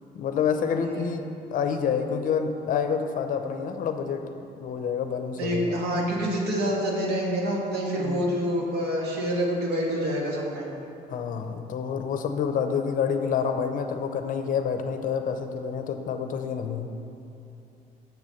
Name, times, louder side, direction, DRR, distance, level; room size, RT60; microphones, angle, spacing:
voice 1, 0.1-1.2 1.5-4.3 4.6-5.7 8.0-8.4 11.1-16.9, left 6 dB, 55° left, 7 dB, 0.6 m, -28 dB
voice 2, 0.8-1.1 5.4-10.7, equal, 75° right, -2 dB, 1.5 m, -27 dB
6.7 x 4.1 x 6.3 m, 2.7 s
cardioid pair, 110°, 17 cm